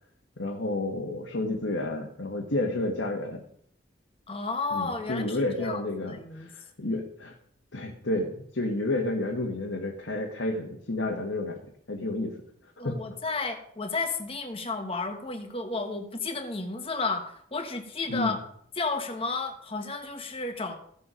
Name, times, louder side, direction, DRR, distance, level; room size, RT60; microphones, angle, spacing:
voice 1, 0.4-3.4 4.7-7.3 7.7-11.6 11.9-12.4 12.8-13.0 18.1-18.4, left 2 dB, 80° left, 0 dB, 1.7 m, -30 dB
voice 2, 4.3-6.5 6.8-7.0 12.8-18.4 18.8-20.7, left 3 dB, 30° left, 5 dB, 1.5 m, -32 dB
16.0 x 7.1 x 5.2 m, 0.67 s
head